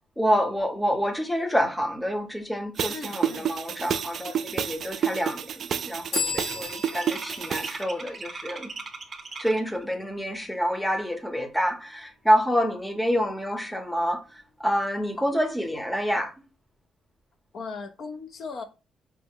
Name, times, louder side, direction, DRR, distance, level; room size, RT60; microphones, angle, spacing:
voice 1, 0.2-8.7 9.4-14.2 14.6-16.3, equal, 5° left, 0.7 m, -27 dB
sound 1, 2.8-7.8, right 8 dB, 60° right, 0.3 m, -30 dB
voice 2, 2.9-3.5 17.5-18.6, left 4 dB, 55° left, 0.5 m, -37 dB
sound 2, 4.6-4.9 5.2-9.8, right 4 dB, 35° right, 0.7 m, -40 dB
sound 3, 6.1-9.7, left 5 dB, 85° left, 1.5 m, -36 dB
4.6 x 2.0 x 3.5 m
cardioid pair, 90°, 0 cm